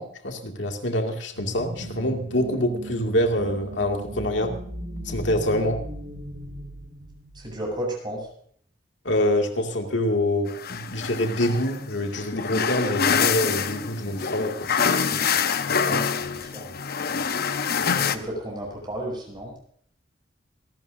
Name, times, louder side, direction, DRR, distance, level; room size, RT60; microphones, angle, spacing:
voice 1, 0.0-4.5 5.0-5.8 9.0-14.7, left 1 dB, 80° left, 3 dB, 2.2 m, -25 dB
sound 1, 1.3-7.8, right 1 dB, 85° right, 3.5 m, -38 dB
voice 2, 7.3-8.3 15.8-16.8 17.9-19.5, right 1 dB, 25° right, -1 dB, 7.2 m, -33 dB
sound 2, 10.5-18.2, left 6 dB, 55° left, 0.8 m, -26 dB
27.0 x 12.5 x 2.6 m, 0.62 s
head